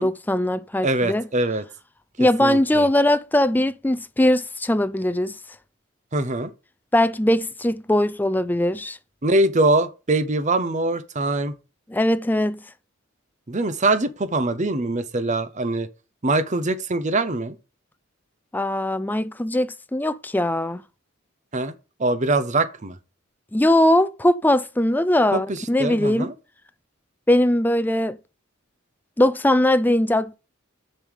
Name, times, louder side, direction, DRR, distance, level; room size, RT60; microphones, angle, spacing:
voice 1, 0.0-1.3 2.2-5.3 6.9-9.0 11.9-12.6 18.5-20.8 23.5-26.3 27.3-28.2 29.2-30.4, left 1 dB, 10° left, 0.4 m, -20 dB
voice 2, 0.8-1.7 2.4-2.9 6.1-6.5 9.2-11.5 13.5-15.9 16.2-17.5 21.5-21.7 22.0-23.0 25.3-26.3, right 2 dB, 35° right, 0.8 m, -23 dB
7.2 x 5.4 x 6.5 m
head